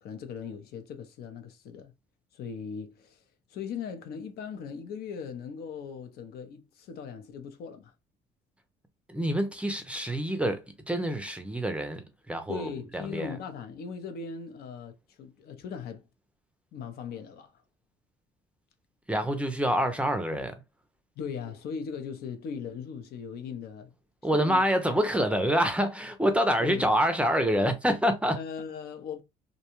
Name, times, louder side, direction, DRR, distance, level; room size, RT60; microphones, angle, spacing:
voice 1, 0.0-1.9 2.3-3.2 3.5-7.9 12.5-16.0 16.7-17.6 21.2-23.9 24.3-24.6 26.6-26.9 28.4-29.2, left 6 dB, 65° left, 0.6 m, -39 dB
voice 2, 9.1-13.4 19.1-20.6 24.2-28.4, equal, 5° right, 0.5 m, -27 dB
2.6 x 2.2 x 2.9 m
cardioid pair, 110°, 17 cm